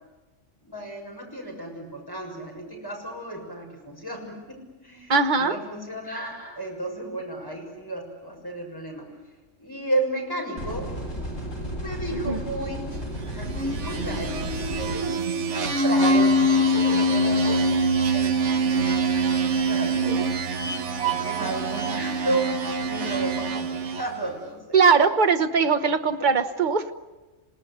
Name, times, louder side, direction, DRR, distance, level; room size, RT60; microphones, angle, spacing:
voice 1, 0.6-9.1 9.6-10.9 11.7-12.9 13.3-14.4 15.6-17.7 18.0-18.8 19.4-20.0 21.0-22.5 22.8-24.8 26.2-26.3, right 1 dB, 15° left, 0 dB, 6.4 m, -33 dB
voice 2, 5.1-5.6 12.3-12.4 20.0-20.2 24.7-26.9, right 5 dB, 40° right, 7 dB, 1.4 m, -20 dB
sound 1, 10.6-15.0, equal, 80° left, 7.2 m, -33 dB
sound 2, 13.4-24.3, right 1 dB, 65° right, 1.4 m, -24 dB
28.0 x 18.0 x 9.8 m, 1.2 s
omnidirectional pair, 1.3 m